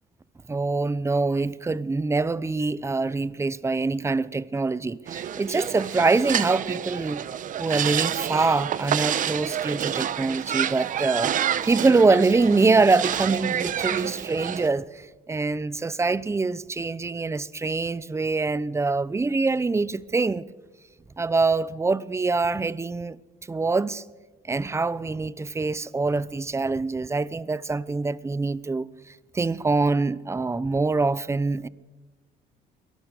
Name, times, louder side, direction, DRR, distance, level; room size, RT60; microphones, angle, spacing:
voice 1, 0.5-7.2 7.6-11.3 11.6-20.4 21.2-23.2 23.5-24.0 24.5-28.9 29.3-31.7, right 3 dB, 15° right, 0.7 m, -24 dB
sound 1, 5.1-14.7, right 9 dB, 50° right, 0.9 m, -28 dB
23.0 x 18.0 x 6.7 m
cardioid pair, 110°, 17 cm